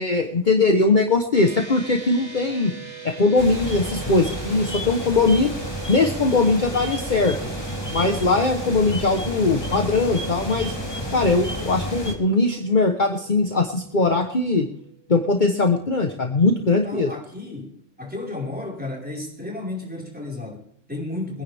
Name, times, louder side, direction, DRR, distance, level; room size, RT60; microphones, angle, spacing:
voice 1, 0.0-2.7 3.0-5.5 5.9-7.4 7.9-10.7 11.1-14.7 15.1-17.1, left 3 dB, 40° left, 4 dB, 1.3 m, -20 dB
sound 1, 1.3-14.9, right 8 dB, 60° right, 3.5 m, -41 dB
sound 2, 3.4-12.1, equal, 20° left, 3.2 m, -31 dB
voice 2, 16.8-21.4, left 2 dB, 5° right, -2 dB, 5.0 m, -33 dB
23.5 x 10.5 x 3.5 m, 0.68 s
omnidirectional pair, 1.3 m